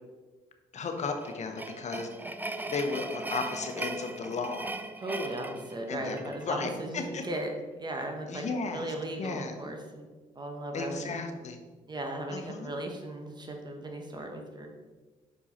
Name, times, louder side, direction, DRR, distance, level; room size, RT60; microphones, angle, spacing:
voice 1, 0.7-2.1 2.7-4.7 5.9-7.2 8.3-9.5 10.7-11.6 12.3-12.7, left 4 dB, 50° left, 5 dB, 1.1 m, -35 dB
sound 1, 0.9-6.4, right 2 dB, 10° right, 0.5 m, -39 dB
voice 2, 5.0-7.5 7.8-10.1 10.3-11.2 11.9-14.7, right 1 dB, 30° right, 3 dB, 1.4 m, -37 dB
6.3 x 4.6 x 4.3 m, 1.3 s
supercardioid pair, 70°, 15 cm